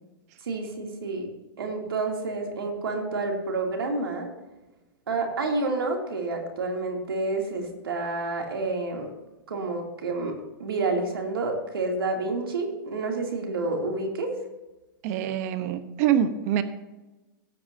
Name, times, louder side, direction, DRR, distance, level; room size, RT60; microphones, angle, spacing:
voice 1, 0.4-1.3 1.6-4.3 5.1-9.1 9.5-14.4, right 3 dB, 90° right, 1 dB, 2.8 m, -29 dB
voice 2, 15.0-16.6, right 9 dB, 45° right, 11 dB, 1.0 m, -25 dB
17.0 x 8.4 x 2.8 m, 1.1 s
hypercardioid pair, 140°, 12 cm